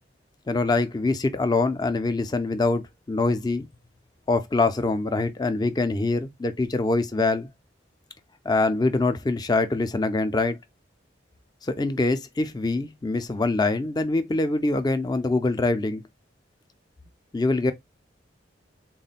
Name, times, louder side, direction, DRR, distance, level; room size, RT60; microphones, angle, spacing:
voice 1, 0.5-2.8 3.1-3.7 4.3-7.5 8.5-10.6 11.6-16.0 17.3-17.7, left 3 dB, 20° left, 0.4 m, -24 dB
3.6 x 2.1 x 4.0 m
head